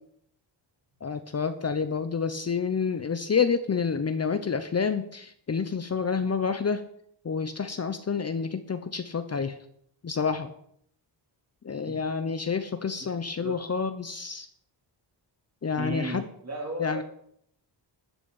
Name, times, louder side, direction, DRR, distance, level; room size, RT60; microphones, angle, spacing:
voice 1, 1.0-6.8 7.2-9.6 10.0-10.5 11.6-14.5 15.6-16.2 16.8-17.0, left 5 dB, 35° left, 10 dB, 0.9 m, -28 dB
voice 2, 15.8-17.0, right 1 dB, 35° right, 0 dB, 4.0 m, -34 dB
12.5 x 6.0 x 8.3 m, 0.68 s
cardioid pair, 100°, 45 cm